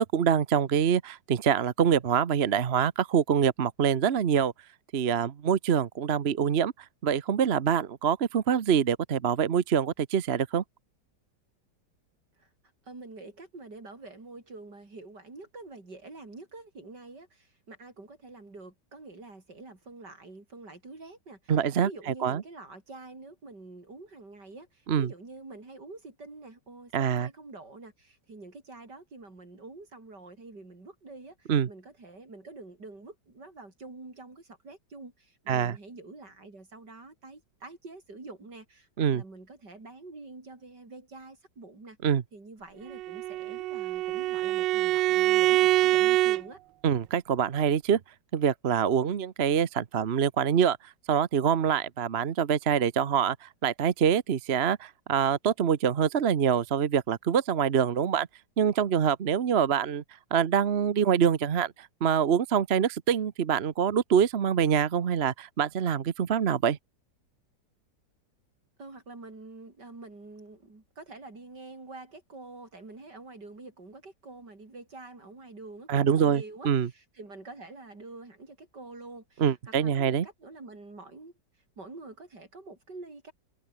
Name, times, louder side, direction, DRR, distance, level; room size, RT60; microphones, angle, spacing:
voice 1, 0.0-4.5 4.9-6.7 7.0-10.6 21.5-21.9 22.2-22.4 24.9-25.1 26.9-27.3 31.5-31.7 35.5-35.8 39.0-39.2 42.0-42.2 46.8-48.0 48.3-50.8 51.1-58.3 58.6-60.0 60.3-66.8 75.9-76.9 79.4-80.3, right 8 dB, 45° right, 1.0 m, -25 dB
voice 2, 12.9-21.5 21.8-42.0 42.3-46.6 68.8-79.5 79.8-81.3 81.8-83.3, right 3 dB, 65° right, 6.0 m, -46 dB
Bowed string instrument, 42.9-46.4, right 16 dB, 85° right, 1.3 m, -25 dB
omnidirectional pair, 1.9 m